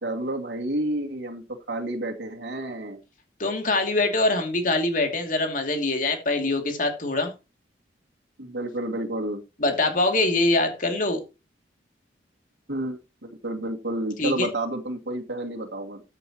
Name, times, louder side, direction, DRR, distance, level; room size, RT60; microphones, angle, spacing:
voice 1, 0.0-3.0 8.4-9.4 12.7-16.0, right 1 dB, 85° right, 2.3 m, -30 dB
voice 2, 3.4-7.3 9.6-11.2 14.2-14.5, left 2 dB, 50° left, 2.7 m, -24 dB
15.0 x 9.0 x 3.0 m
head